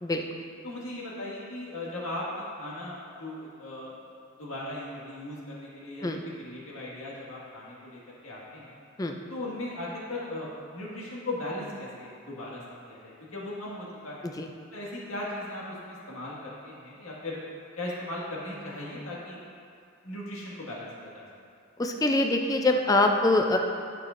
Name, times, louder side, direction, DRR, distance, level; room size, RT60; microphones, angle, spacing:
voice 1, 0.6-3.9 4.4-8.7 9.3-14.2 14.7-17.4 17.8-19.4 20.0-21.2, left 1 dB, 80° left, -5 dB, 1.8 m, -38 dB
voice 2, 21.8-23.6, left 2 dB, 15° left, 3 dB, 0.4 m, -24 dB
12.5 x 5.7 x 2.6 m, 2.4 s
head